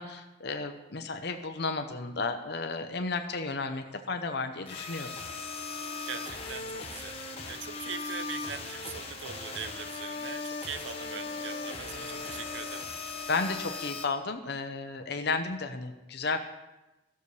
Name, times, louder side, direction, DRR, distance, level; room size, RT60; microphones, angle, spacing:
voice 1, 0.0-5.1 13.3-16.4, left 3 dB, 60° left, 6 dB, 0.8 m, -33 dB
sound 1, 4.7-14.0, left 4 dB, 30° left, 1.2 m, -38 dB
voice 2, 6.1-12.9, right 7 dB, 80° right, 12 dB, 0.6 m, -42 dB
16.0 x 6.8 x 3.3 m, 1.0 s
head